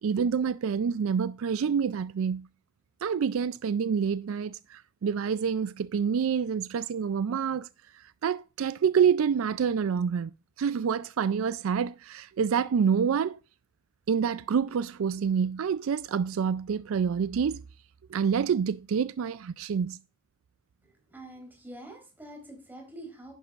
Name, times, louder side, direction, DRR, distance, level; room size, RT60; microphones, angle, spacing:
voice 1, 0.0-2.5 3.0-7.7 8.2-10.3 10.6-13.4 14.1-17.6 18.1-20.0, right 7 dB, 70° right, 0.4 m, -27 dB
voice 2, 20.8-23.3, right 1 dB, 10° right, 3.8 m, -46 dB
11.0 x 10.5 x 2.5 m
head